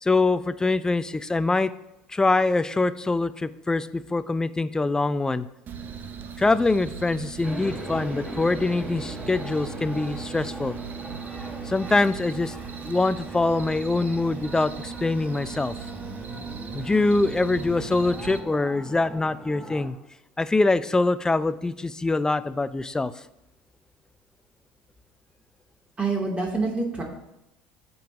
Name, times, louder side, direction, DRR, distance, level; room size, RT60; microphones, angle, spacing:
voice 1, 0.0-1.7 2.1-5.5 6.4-10.8 11.6-12.5 12.8-15.7 16.7-20.0 20.4-23.1, left 3 dB, 15° left, 14 dB, 0.5 m, -24 dB
sound 1, 5.7-18.4, right 7 dB, 45° right, 0.8 m, -38 dB
sound 2, 7.4-19.9, equal, 5° right, 3.7 m, -40 dB
voice 2, 26.0-27.0, right 3 dB, 25° right, 0 dB, 3.0 m, -26 dB
16.0 x 5.4 x 2.9 m, 0.91 s
hypercardioid pair, 75°, 5 cm